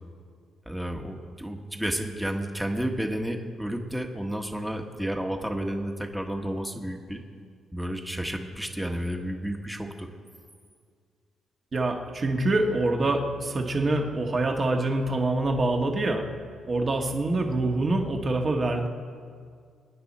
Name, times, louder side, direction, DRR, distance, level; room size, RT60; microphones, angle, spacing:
voice 1, 0.7-7.2 7.7-10.1, equal, 5° right, 4 dB, 1.3 m, -31 dB
voice 2, 11.7-16.3 16.6-18.9, right 2 dB, 35° right, 2 dB, 1.5 m, -25 dB
25.0 x 9.6 x 4.3 m, 2.1 s
cardioid pair, 90°, 0 cm